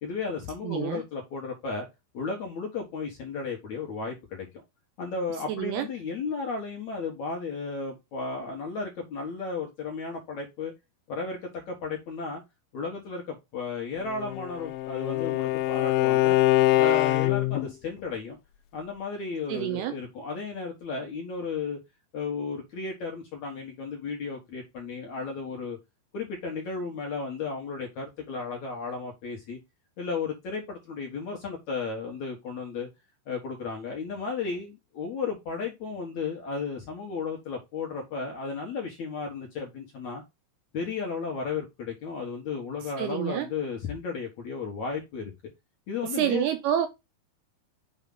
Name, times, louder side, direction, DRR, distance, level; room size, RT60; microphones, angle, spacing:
voice 1, 0.0-1.9 2.1-4.5 5.0-10.7 11.1-12.4 12.7-16.4 16.8-18.4 18.7-21.8 22.1-25.8 26.1-29.6 30.0-32.9 33.3-40.2 40.7-45.3 45.9-46.5, left 4 dB, 60° left, 2.1 m, -34 dB
voice 2, 0.6-1.0 5.5-5.9 19.5-20.0 42.8-43.5 46.0-46.9, right 11 dB, 80° right, 2.4 m, -28 dB
Bowed string instrument, 14.1-17.7, left 17 dB, 90° left, 2.9 m, -24 dB
7.2 x 5.0 x 3.9 m
omnidirectional pair, 5.2 m